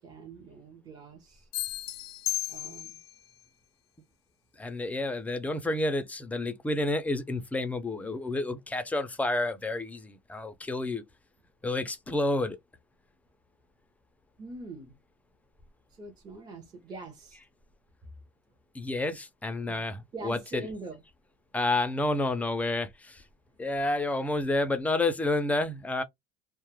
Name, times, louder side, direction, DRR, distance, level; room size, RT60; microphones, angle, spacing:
voice 1, 0.0-1.5 2.5-3.0 14.4-15.0 15.9-17.4 19.7-19.8 20.1-21.0, right 3 dB, 25° right, 0.7 m, -43 dB
sound 1, 1.5-3.2, left 16 dB, 70° left, 0.4 m, -34 dB
voice 2, 4.6-11.0 11.6-12.6 18.7-20.7 21.5-23.2 23.6-26.0, left 2 dB, 10° left, 0.3 m, -30 dB
2.2 x 2.0 x 3.0 m
cardioid pair, 145°, 18 cm